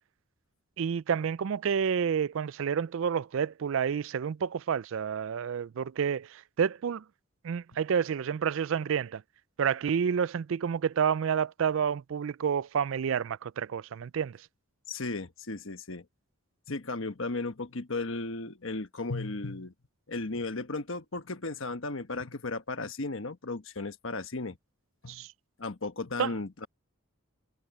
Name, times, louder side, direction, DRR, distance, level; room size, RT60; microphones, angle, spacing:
voice 1, 0.8-7.0 7.4-9.2 9.6-14.4 25.1-25.3 26.2-26.3, right 7 dB, 60° right, 0.3 m, -29 dB
voice 2, 14.9-16.0 16.7-19.7 20.1-24.6 25.0-25.2 25.6-26.7, left 3 dB, 60° left, 1.2 m, -35 dB
head